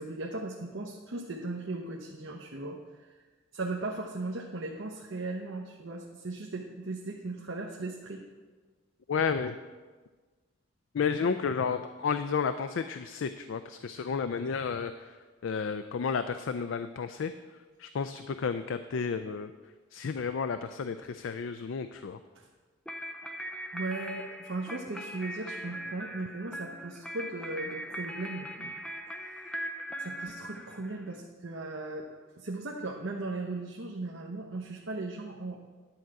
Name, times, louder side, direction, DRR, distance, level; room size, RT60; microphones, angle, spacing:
voice 1, 0.0-3.1 3.5-8.2 22.3-22.5 23.7-28.8 29.4-29.5 30.0-32.1 32.4-35.6, right 2 dB, 65° right, 0 dB, 0.9 m, -37 dB
voice 2, 9.1-9.6 10.9-15.2 15.4-17.3 17.8-19.5 19.9-22.2, left 6 dB, 65° left, 10 dB, 0.4 m, -32 dB
sound 1, 22.9-31.2, equal, 5° left, 0.5 m, -40 dB
10.5 x 4.8 x 7.6 m, 1.4 s
head